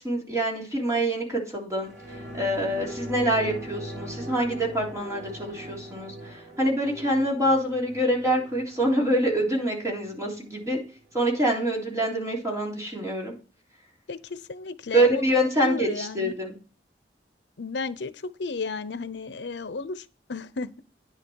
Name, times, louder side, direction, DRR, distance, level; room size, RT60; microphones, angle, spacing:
voice 1, 0.0-10.8 11.1-13.3 14.9-16.6, right 1 dB, 15° right, 3.6 m, -26 dB
sound 1, 1.8-10.8 11.1-11.2, equal, 70° right, 3.9 m, -41 dB
voice 2, 14.1-15.3 15.6-16.3 17.6-20.8, left 4 dB, 75° left, 0.7 m, -33 dB
9.9 x 6.8 x 4.5 m
head